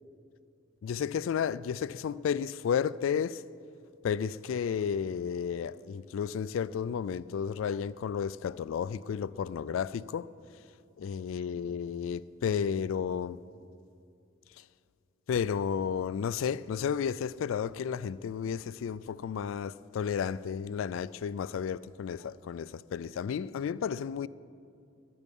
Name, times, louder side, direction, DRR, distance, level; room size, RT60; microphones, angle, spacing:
voice 1, 0.8-3.4 4.0-10.3 11.0-13.4 14.5-14.6 15.3-24.3, left 7 dB, 85° left, 0.3 m, -32 dB
20.0 x 9.5 x 5.4 m
head